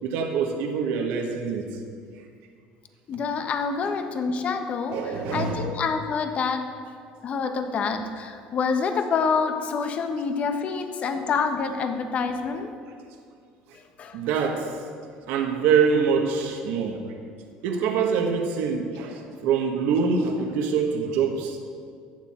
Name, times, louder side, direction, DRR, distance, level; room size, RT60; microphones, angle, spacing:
voice 1, 0.0-1.6 4.9-5.8 14.1-14.7 15.3-17.0 17.6-21.6, right 6 dB, 75° right, 2 dB, 1.4 m, -24 dB
voice 2, 3.1-6.7 7.2-12.7 14.0-14.2, left 5 dB, 45° left, 7 dB, 1.2 m, -27 dB
14.0 x 9.2 x 4.4 m, 2.2 s
supercardioid pair, 110°, 3 cm